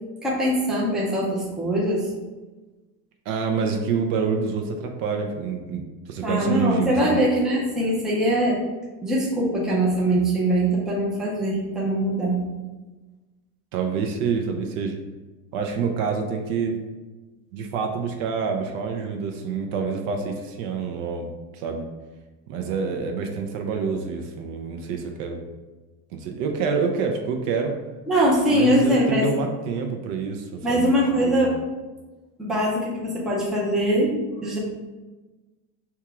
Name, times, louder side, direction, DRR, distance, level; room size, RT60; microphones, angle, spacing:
voice 1, 0.2-2.1 6.2-8.6 9.0-12.4 28.1-29.3 30.6-31.6 32.4-34.6, equal, ahead, -6 dB, 0.5 m, -22 dB
voice 2, 3.3-5.8 6.1-7.2 13.7-15.0 15.5-16.8 17.5-21.9 22.5-25.4 26.1-27.8 28.5-31.4, right 5 dB, 50° right, 3 dB, 0.5 m, -27 dB
3.5 x 2.9 x 4.6 m, 1.2 s
cardioid pair, 165°, 38 cm